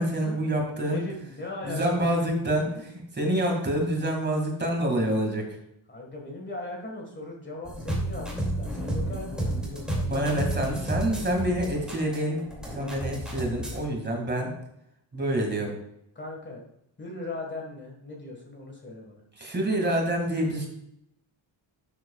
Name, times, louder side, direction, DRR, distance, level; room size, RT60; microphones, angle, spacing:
voice 1, 0.0-1.0 1.6-5.5 10.0-14.5 15.1-15.8 19.4-20.7, right 1 dB, 25° right, 1 dB, 2.2 m, -27 dB
voice 2, 0.9-2.2 5.9-10.6 16.1-16.6 17.0-19.2, left 2 dB, 25° left, 0 dB, 1.7 m, -39 dB
sound 1, 7.6-13.8, right 1 dB, ahead, 2.5 m, -31 dB
12.0 x 7.6 x 2.4 m, 0.78 s
wide cardioid pair, 160°, 45 cm